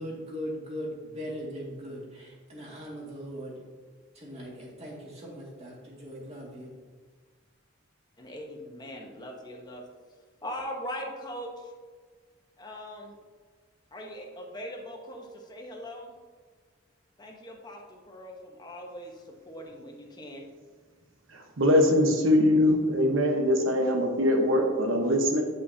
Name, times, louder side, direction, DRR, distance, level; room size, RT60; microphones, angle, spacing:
voice 1, 0.0-3.6 4.1-6.7, equal, 30° right, -4 dB, 2.0 m, -39 dB
voice 2, 8.2-9.9 10.4-11.7 12.6-13.2 13.9-16.1 17.2-20.4, equal, 20° left, 0 dB, 1.0 m, -41 dB
voice 3, 21.3-25.4, left 1 dB, 75° right, 3 dB, 1.1 m, -22 dB
9.4 x 5.6 x 2.8 m, 1.5 s
head